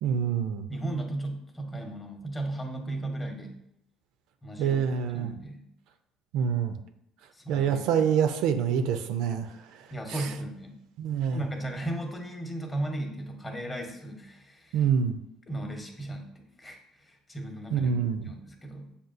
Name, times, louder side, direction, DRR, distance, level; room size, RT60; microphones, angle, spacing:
voice 1, 0.0-0.7 4.6-5.3 6.3-6.8 7.5-10.3 11.0-11.4 14.7-15.2 17.7-18.3, right 7 dB, 75° right, 8 dB, 0.3 m, -26 dB
voice 2, 0.7-3.6 4.4-4.8 5.1-5.6 7.3-8.0 9.9-10.8 11.3-14.8 15.5-17.9 18.2-18.9, right 1 dB, 20° left, 3 dB, 0.8 m, -36 dB
6.7 x 2.3 x 2.5 m, 0.79 s
supercardioid pair, 90°, 0 cm